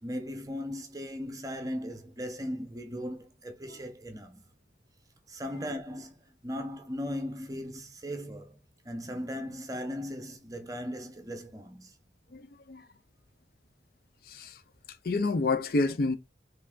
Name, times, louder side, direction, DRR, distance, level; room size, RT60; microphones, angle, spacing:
voice 1, 0.0-4.4 5.3-8.6 8.8-11.9, equal, 20° right, 0.9 m, -38 dB
voice 2, 12.3-12.9 14.2-14.6 15.0-16.2, left 3 dB, 55° left, 0.5 m, -29 dB
5.4 x 3.3 x 2.4 m
head